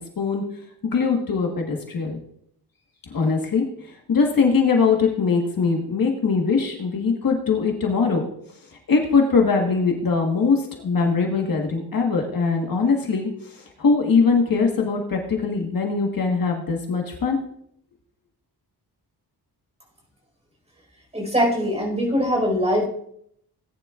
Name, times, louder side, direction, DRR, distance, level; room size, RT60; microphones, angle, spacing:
voice 1, 0.9-2.2 3.1-3.6 4.1-8.3 8.9-17.4, left 5 dB, 55° left, 1 dB, 1.6 m, -21 dB
voice 2, 21.1-22.8, equal, 15° right, -1 dB, 5.0 m, -22 dB
18.0 x 10.0 x 2.5 m, 0.70 s
wide cardioid pair, 180°, 40 cm